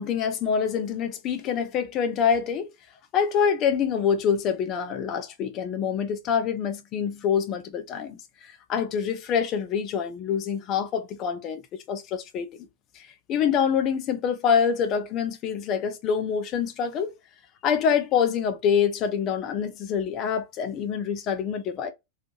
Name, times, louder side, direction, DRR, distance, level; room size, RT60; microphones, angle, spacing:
voice 1, 0.0-2.7 3.1-11.6 11.9-12.5 12.9-17.1 17.6-21.9, left 7 dB, 35° left, 0.5 m, -26 dB
3.2 x 2.1 x 2.8 m
figure-of-eight pair, 90°, 0 cm